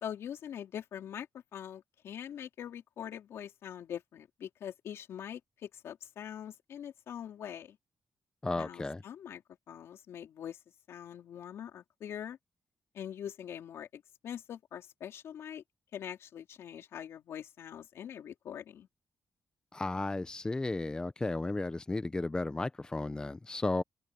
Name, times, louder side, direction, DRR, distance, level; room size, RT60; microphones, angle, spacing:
voice 1, 0.0-1.3 1.5-7.8 8.6-10.6 10.9-12.4 12.9-15.6 15.9-18.9, left 9 dB, 85° left, 3.7 m, -43 dB
voice 2, 8.4-9.0 19.7-23.8, left 2 dB, 20° left, 0.8 m, -34 dB
cardioid pair, 100°, 4 cm